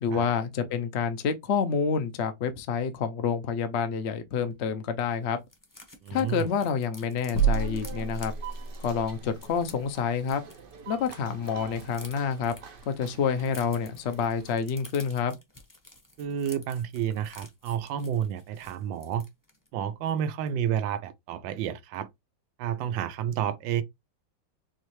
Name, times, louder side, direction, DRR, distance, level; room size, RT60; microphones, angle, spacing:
voice 1, 0.0-5.4 6.1-8.3 8.8-10.4 10.9-12.5 12.9-15.4, left 6 dB, 65° left, 0.6 m, -28 dB
sound 1, 4.5-4.6 4.8-4.9 5.2-11.2 11.4-19.7 20.0-20.2 20.5-20.7, left 2 dB, 20° left, 0.6 m, -51 dB
voice 2, 6.0-6.5 16.2-19.2 19.7-22.1 22.6-23.8, right 9 dB, 85° right, 1.3 m, -30 dB
sound 2, 7.3-8.9, right 5 dB, 90° left, 1.9 m, -27 dB
sound 3, 7.3-14.5, right 8 dB, 60° right, 0.5 m, -46 dB
4.7 x 3.1 x 3.1 m
omnidirectional pair, 2.0 m